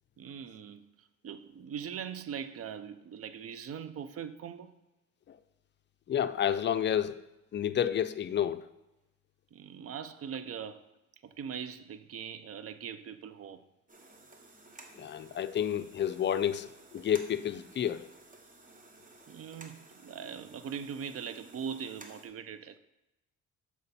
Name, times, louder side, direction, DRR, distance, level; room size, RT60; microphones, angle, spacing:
voice 1, 0.2-4.7 9.5-10.8 11.2-13.6 19.3-22.8, right 7 dB, 50° right, 0.6 m, -41 dB
voice 2, 6.1-7.2 7.5-8.7 15.0-18.1, left 9 dB, 40° left, 0.4 m, -30 dB
sound 1, 13.9-22.3, right 2 dB, 25° right, 1.1 m, -55 dB
6.7 x 4.9 x 4.2 m
cardioid pair, 90°, 30 cm